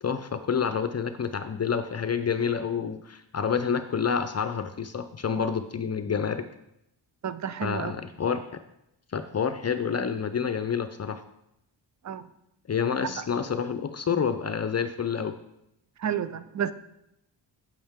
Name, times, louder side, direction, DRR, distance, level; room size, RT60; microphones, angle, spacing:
voice 1, 0.0-6.4 7.6-8.4 9.1-11.2 12.7-15.3, left 6 dB, 35° left, 10 dB, 0.6 m, -28 dB
voice 2, 7.2-7.9 12.0-12.3 13.0-13.1 16.0-16.7, right 9 dB, 40° right, 14 dB, 0.6 m, -31 dB
8.5 x 7.5 x 3.6 m, 0.83 s
cardioid pair, 75°, 45 cm